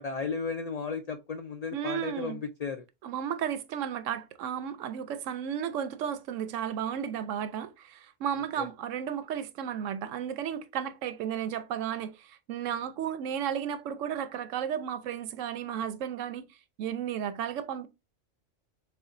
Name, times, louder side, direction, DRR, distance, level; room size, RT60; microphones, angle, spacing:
voice 1, 0.0-2.9 8.6-8.7, left 5 dB, 75° left, 0.3 m, -34 dB
voice 2, 1.7-2.4 3.0-16.5 16.8-17.9, right 9 dB, 80° right, 0.9 m, -33 dB
6.7 x 2.3 x 2.5 m
omnidirectional pair, 1.3 m